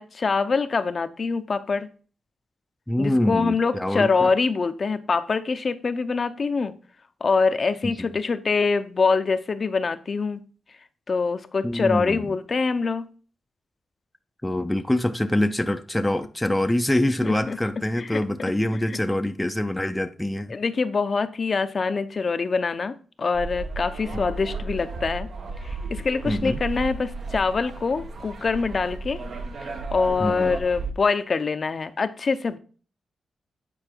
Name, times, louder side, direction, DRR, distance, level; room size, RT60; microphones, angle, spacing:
voice 1, 0.0-1.9 3.0-6.7 7.2-10.4 11.1-13.1 17.2-17.6 17.9-18.2 18.9-19.0 20.5-25.3 25.6-29.2 29.6-32.6, left 4 dB, 45° left, 0.7 m, -24 dB
voice 2, 2.9-4.3 11.6-12.3 14.4-20.6 24.1-24.2 26.3-26.6 30.2-30.5, left 1 dB, 10° left, 0.6 m, -25 dB
sound 1, 23.3-30.9, right 3 dB, 60° right, 1.1 m, -34 dB
8.8 x 4.6 x 4.5 m
cardioid pair, 100°, 0 cm